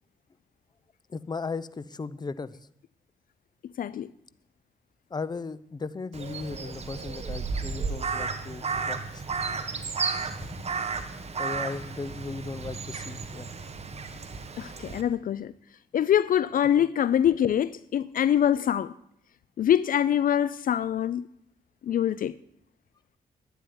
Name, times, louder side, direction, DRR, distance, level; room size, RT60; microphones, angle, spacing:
voice 1, 1.1-2.6 5.1-9.2 10.2-10.6 11.4-13.5 16.8-16.9, left 4 dB, 25° left, 0.7 m, -37 dB
voice 2, 3.8-4.1 14.6-15.5 15.9-18.9 19.6-21.3 21.8-22.3, left 10 dB, 65° left, 0.4 m, -24 dB
Crow, 6.1-15.0, right 4 dB, 45° right, 1.4 m, -33 dB
11.5 x 9.3 x 10.0 m
cardioid pair, 90°, 16 cm